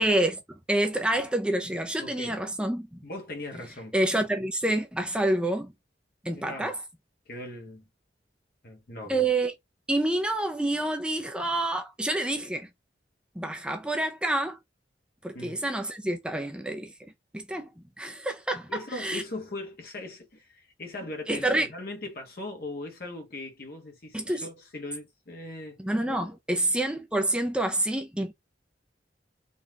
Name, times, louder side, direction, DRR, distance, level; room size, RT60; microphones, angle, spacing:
voice 1, 0.0-3.0 3.9-5.7 6.2-6.8 9.1-9.5 9.9-12.7 13.4-14.6 15.2-16.9 17.3-17.7 18.0-19.2 21.3-21.7 24.1-24.4 25.8-28.3, right 1 dB, 5° right, 0.5 m, -28 dB
voice 2, 2.0-2.4 3.0-3.9 6.3-6.7 7.3-7.8 8.6-9.3 15.3-15.6 18.7-25.8 26.5-26.6, left 2 dB, 55° left, 1.2 m, -39 dB
3.9 x 3.2 x 2.4 m
head